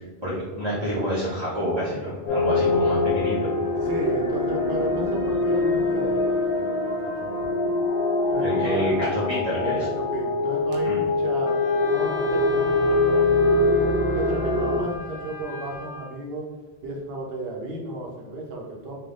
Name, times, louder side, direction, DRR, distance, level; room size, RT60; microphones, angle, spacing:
voice 1, 0.2-3.5 8.4-9.8 10.8-11.0, equal, 30° right, -8 dB, 0.8 m, -27 dB
sound 1, 2.3-14.8, left 2 dB, 80° left, 1.2 m, -23 dB
voice 2, 3.8-6.9 7.2-7.8 8.3-8.8 9.6-13.7 14.1-16.5 16.8-18.9, right 2 dB, 70° right, -1 dB, 1.0 m, -34 dB
Wind instrument woodwind instrument, 11.5-16.1, left 4 dB, 60° left, 0.7 m, -37 dB
3.5 x 2.4 x 3.7 m, 1.3 s
omnidirectional pair, 1.1 m